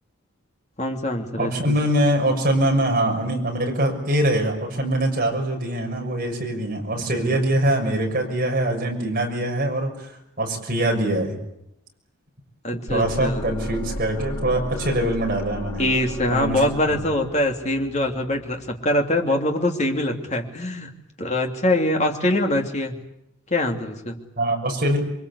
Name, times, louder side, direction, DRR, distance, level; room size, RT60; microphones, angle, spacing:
voice 1, 0.8-1.7 12.6-13.4 15.8-20.9 21.2-22.9 23.5-24.2, left 1 dB, 30° left, 3 dB, 2.9 m, -23 dB
voice 2, 1.4-10.1 10.4-11.4 12.9-15.8 16.3-16.6 16.9-17.0 24.4-25.0, right 1 dB, 40° right, 0 dB, 6.2 m, -23 dB
sound 1, 12.9-18.9, left 1 dB, 70° left, 6.1 m, -34 dB
27.5 x 23.5 x 8.4 m, 0.81 s
head